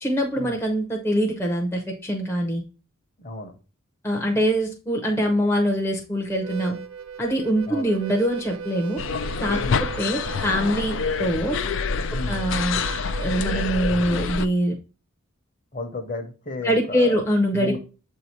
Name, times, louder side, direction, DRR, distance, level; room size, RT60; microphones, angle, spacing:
voice 1, 0.0-2.6 4.0-6.8 7.2-9.0 9.4-11.6 12.2-12.8 13.2-14.8 16.6-17.8, equal, 10° left, 0 dB, 0.7 m, -24 dB
voice 2, 3.2-3.5 7.7-7.9 9.6-9.8 12.1-12.4 15.7-17.2 17.5-17.8, left 2 dB, 40° left, 6 dB, 0.9 m, -33 dB
Harmonica, 6.3-13.7, right 7 dB, 75° right, 0.6 m, -39 dB
sound 1, 9.0-14.5, left 5 dB, 60° left, 0.4 m, -27 dB
7.5 x 2.8 x 4.5 m, 0.34 s
head